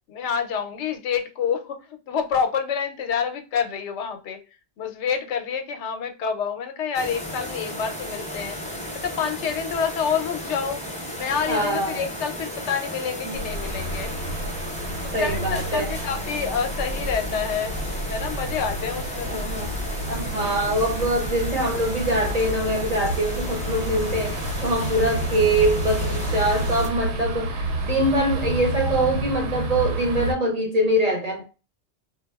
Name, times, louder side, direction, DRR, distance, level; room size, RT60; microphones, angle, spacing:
voice 1, 0.1-4.4 4.8-8.6 8.9-10.8 11.2-14.1 15.0-17.7 18.1-19.5, left 6 dB, 85° left, 0.9 m, -28 dB
sound 1, 6.9-26.9, equal, 10° left, 0.5 m, -34 dB
voice 2, 11.5-12.0 13.2-13.4 15.1-16.0 19.3-19.7 20.0-31.5, right 1 dB, 45° right, 0.6 m, -24 dB
sound 2, 13.3-30.3, right 1 dB, 80° right, 0.9 m, -30 dB
3.4 x 2.2 x 2.2 m
omnidirectional pair, 1.1 m